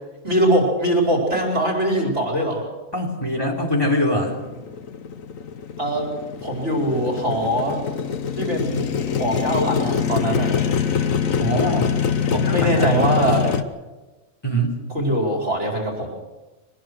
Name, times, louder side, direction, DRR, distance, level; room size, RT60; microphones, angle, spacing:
voice 1, 0.2-2.6 5.8-6.1 6.4-7.8 8.3-10.6 12.4-13.6 14.9-16.1, right 1 dB, 60° right, 0 dB, 5.1 m, -22 dB
voice 2, 2.9-4.4 11.4-11.9 12.3-12.9 14.4-14.8, equal, 15° left, 0 dB, 3.4 m, -23 dB
Motorcycle, 4.3-13.6, left 7 dB, 80° left, 1.4 m, -24 dB
23.0 x 20.5 x 6.4 m, 1.2 s
omnidirectional pair, 1.4 m